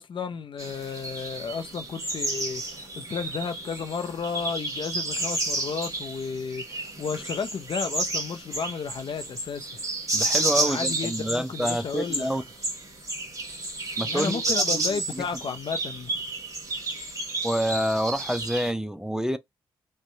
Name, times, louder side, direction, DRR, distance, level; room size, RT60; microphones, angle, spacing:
voice 1, 0.0-9.7 10.6-12.3 14.0-16.1, left 6 dB, 55° left, 0.5 m, -33 dB
sound 1, 0.6-18.7, right 2 dB, 35° right, 1.2 m, -31 dB
voice 2, 10.1-12.4 14.0-14.4 14.7-15.3 17.4-19.4, equal, 5° right, 0.4 m, -28 dB
2.6 x 2.1 x 2.6 m
supercardioid pair, 45°, 10 cm